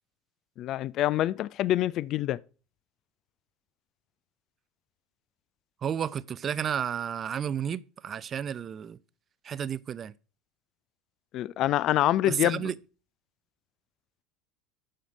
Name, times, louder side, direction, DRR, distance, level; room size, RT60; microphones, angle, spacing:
voice 1, 0.6-2.4 11.3-12.6, left 13 dB, 45° left, 0.4 m, -26 dB
voice 2, 5.8-9.0 9.4-10.1 12.2-12.8, right 8 dB, 35° right, 0.5 m, -32 dB
7.7 x 6.5 x 5.3 m
figure-of-eight pair, 70°, 0 cm